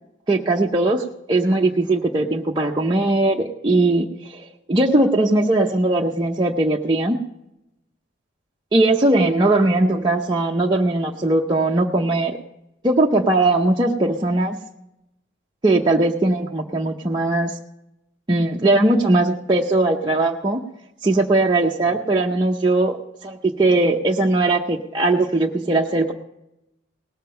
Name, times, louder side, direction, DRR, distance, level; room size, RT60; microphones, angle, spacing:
voice 1, 0.3-7.2 8.7-12.4 12.8-14.6 15.6-17.6 18.3-20.6 21.0-23.0 23.2-26.1, right 2 dB, 25° right, -2 dB, 0.6 m, -19 dB
18.5 x 7.3 x 5.6 m, 0.86 s
head